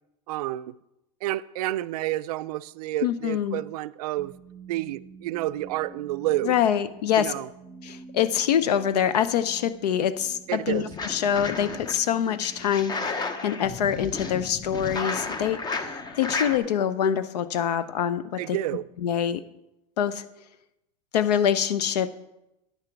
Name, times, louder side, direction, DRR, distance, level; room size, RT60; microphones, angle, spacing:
voice 1, 0.3-0.8 1.2-4.3 4.7-6.5 7.2-7.5 10.5-10.9 18.4-18.8, right 15 dB, 70° right, 0.4 m, -29 dB
voice 2, 3.0-3.6 6.4-7.3 7.8-13.2 13.4-15.9 16.2-18.6 19.0-19.4 20.0-20.3 21.1-22.1, left 9 dB, 80° left, 0.7 m, -25 dB
sound 1, 4.2-16.3, right 6 dB, 25° right, 0.7 m, -48 dB
sound 2, 10.7-12.0 12.4-16.6, left 4 dB, 20° left, 0.7 m, -33 dB
9.6 x 6.7 x 4.6 m
hypercardioid pair, 120°, 21 cm